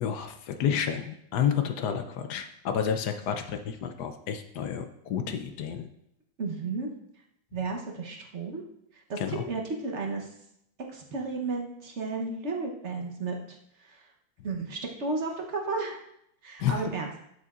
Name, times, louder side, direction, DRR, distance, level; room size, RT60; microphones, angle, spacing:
voice 1, 0.0-5.9 9.2-9.4 16.6-16.8, left 8 dB, 70° left, 7 dB, 1.1 m, -30 dB
voice 2, 6.4-6.9 7.5-8.6 9.1-10.3 10.9-14.0 14.4-16.0 16.4-17.1, right 3 dB, 45° right, 1 dB, 1.0 m, -33 dB
12.0 x 6.7 x 2.4 m, 0.77 s
omnidirectional pair, 2.1 m